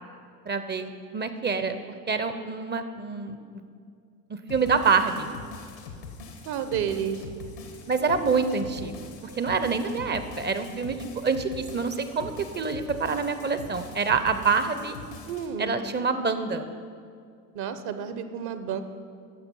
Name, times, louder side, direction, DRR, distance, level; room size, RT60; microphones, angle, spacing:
voice 1, 0.5-1.8 2.1-3.4 4.3-5.3 7.9-8.9 9.4-11.0 11.2-15.0 15.6-16.6, right 5 dB, 20° right, 10 dB, 0.7 m, -26 dB
sound 1, 4.5-15.5, left 4 dB, 85° left, 1.5 m, -43 dB
voice 2, 6.5-7.2 15.2-15.8 17.5-18.8, right 8 dB, 50° right, 10 dB, 1.0 m, -31 dB
11.5 x 7.1 x 5.4 m, 2.3 s
hypercardioid pair, 65°, 49 cm